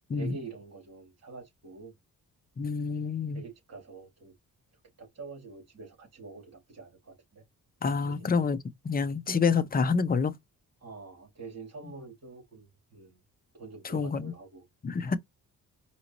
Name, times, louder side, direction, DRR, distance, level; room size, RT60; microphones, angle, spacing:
voice 1, 0.1-1.9 3.3-4.3 5.0-7.4 8.0-8.3 10.8-13.2 13.5-14.6, right 4 dB, 45° right, 3.1 m, -46 dB
voice 2, 2.6-3.4 7.8-8.6 8.8-10.3 13.8-14.3 14.8-15.2, left 5 dB, 25° left, 0.6 m, -27 dB
5.0 x 2.8 x 2.9 m
cardioid pair, 105°, 36 cm